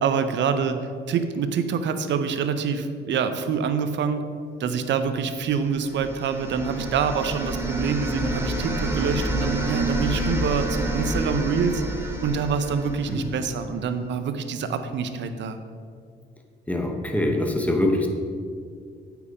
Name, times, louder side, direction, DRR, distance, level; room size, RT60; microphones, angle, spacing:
voice 1, 0.0-4.2 4.6-11.8 12.2-15.6, right 6 dB, 65° right, 9 dB, 0.7 m, -26 dB
sound 1, 5.6-13.6, right 1 dB, 10° right, 1.3 m, -29 dB
voice 2, 16.7-18.1, left 1 dB, 5° left, 3 dB, 1.1 m, -23 dB
8.5 x 4.8 x 4.9 m, 2.1 s
cardioid pair, 90°, 20 cm